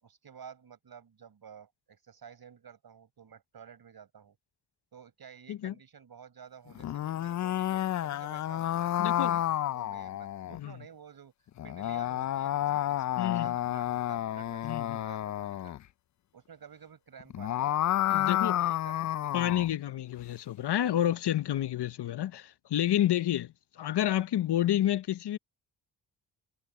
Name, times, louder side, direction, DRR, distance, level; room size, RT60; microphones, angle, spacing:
voice 1, 0.0-4.4 4.9-11.3 11.6-15.7 16.3-19.3, right 7 dB, 55° right, 4.7 m, -52 dB
sound 1, 6.7-10.6 11.6-15.8 17.2-19.7, left 12 dB, 45° left, 0.4 m, -30 dB
voice 2, 9.0-9.4 10.5-10.7 13.2-13.5 14.6-15.0 18.1-18.6 19.3-25.4, left 12 dB, 70° left, 1.0 m, -29 dB
supercardioid pair, 55°, 43 cm